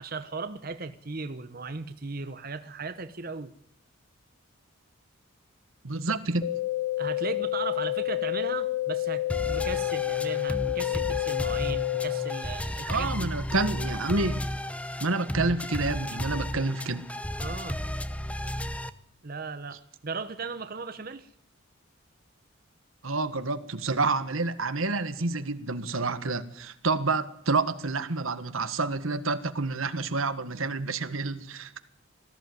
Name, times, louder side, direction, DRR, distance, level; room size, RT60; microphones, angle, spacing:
voice 1, 0.0-3.5 7.0-13.3 17.4-17.8 19.2-21.3, right 4 dB, 45° right, 10 dB, 0.9 m, -37 dB
voice 2, 5.8-6.5 12.9-14.5 15.0-17.0 23.0-31.8, right 3 dB, 85° right, 11 dB, 1.6 m, -29 dB
sound 1, 6.4-12.4, left 16 dB, 45° left, 1.3 m, -29 dB
sound 2, 9.3-18.9, equal, 5° left, 0.8 m, -33 dB
19.5 x 14.5 x 9.5 m, 0.68 s
head